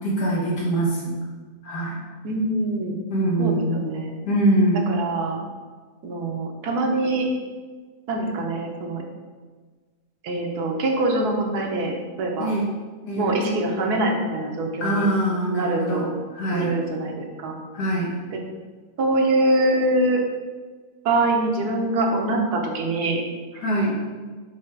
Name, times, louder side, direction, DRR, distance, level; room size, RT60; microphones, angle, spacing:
voice 1, 0.0-1.2 1.6-2.0 3.1-3.8 4.3-4.9 12.4-12.7 13.0-13.3 14.8-16.7 17.7-18.2 23.5-24.0, right 1 dB, 85° left, -5 dB, 1.9 m, -23 dB
voice 2, 2.2-3.0 3.4-4.2 4.9-5.4 6.0-7.3 8.1-9.0 10.2-12.5 13.2-15.1 15.5-16.1 16.5-17.6 18.3-18.4 19.0-20.2 21.0-23.2, right 2 dB, 75° right, 1 dB, 1.4 m, -24 dB
6.4 x 3.5 x 4.5 m, 1.4 s
omnidirectional pair, 1.7 m